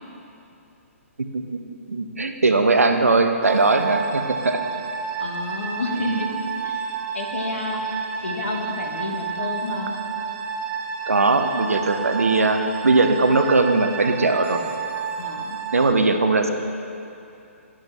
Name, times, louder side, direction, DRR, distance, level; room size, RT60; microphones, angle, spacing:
voice 1, 1.9-4.6 5.9-6.2 11.1-14.6 15.7-16.5, right 3 dB, 75° right, 6 dB, 0.6 m, -20 dB
sound 1, 3.4-15.9, right 7 dB, 20° right, 0.4 m, -30 dB
voice 2, 5.2-6.4 6.6-6.8 7.1-7.8 8.2-10.0 15.2-15.6 16.0-16.1, left 3 dB, 60° left, 1 dB, 1.2 m, -30 dB
10.0 x 7.5 x 3.3 m, 2.7 s
figure-of-eight pair, 130°, 8 cm